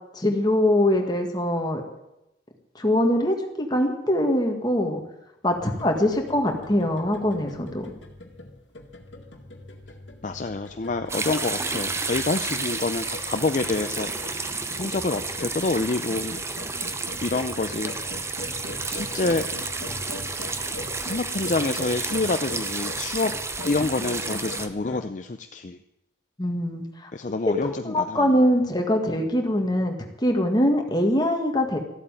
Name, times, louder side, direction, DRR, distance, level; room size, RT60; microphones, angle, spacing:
voice 1, 0.1-1.8 2.8-5.0 5.4-7.9 26.4-27.3 27.6-30.0 30.2-31.8, left 1 dB, 20° left, 3 dB, 1.8 m, -23 dB
sound 1, 5.5-25.0, left 2 dB, 70° left, 2.0 m, -41 dB
voice 2, 10.2-16.4 17.2-17.9 18.2-18.4 18.9-19.7 21.0-23.3 23.6-25.8 27.1-28.3, left 3 dB, 40° left, 8 dB, 0.5 m, -27 dB
sound 2, 11.1-24.7, right 3 dB, 15° right, 0.7 m, -31 dB
14.0 x 8.4 x 9.0 m, 0.91 s
head